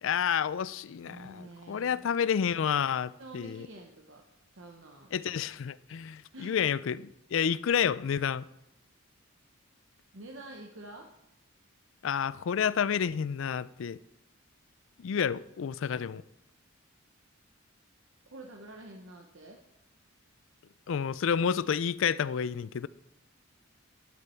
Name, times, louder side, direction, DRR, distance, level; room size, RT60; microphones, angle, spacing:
voice 1, 0.0-3.7 5.1-8.5 12.0-14.0 15.0-16.2 20.9-22.9, left 7 dB, 65° left, 0.4 m, -30 dB
voice 2, 1.0-2.0 3.2-4.2 4.5-5.1 6.3-6.6 10.1-11.1 18.3-19.6, right 2 dB, 65° right, 1.1 m, -48 dB
12.0 x 8.8 x 4.4 m
head